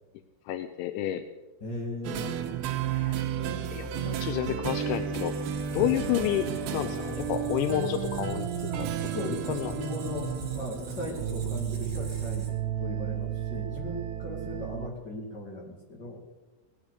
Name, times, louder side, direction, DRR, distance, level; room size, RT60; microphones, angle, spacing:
voice 1, 0.5-1.2 2.9-3.2 3.7-5.4 5.7-9.8, left 12 dB, 80° left, 9 dB, 2.8 m, -30 dB
voice 2, 1.6-2.4 3.4-4.1 5.7-5.9 9.1-10.3 10.5-12.5 12.8-16.2, left 1 dB, 40° left, -1 dB, 1.5 m, -38 dB
sound 1, 2.0-14.9, right 9 dB, 75° right, 3.1 m, -33 dB
Squeak, 4.9-12.8, right 4 dB, 40° right, 3.0 m, -40 dB
19.0 x 8.0 x 8.1 m, 1.2 s
omnidirectional pair, 5.8 m